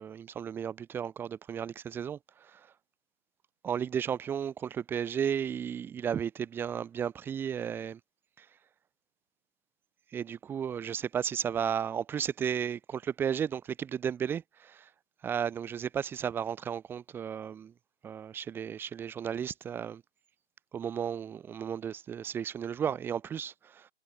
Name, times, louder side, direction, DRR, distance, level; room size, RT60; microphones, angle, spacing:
voice 1, 0.0-2.7 3.6-8.0 8.4-8.5 10.1-14.9 15.2-17.7 18.0-20.0 20.7-23.9, right 8 dB, 5° right, 4.1 m, -34 dB
figure-of-eight pair, 150°, 33 cm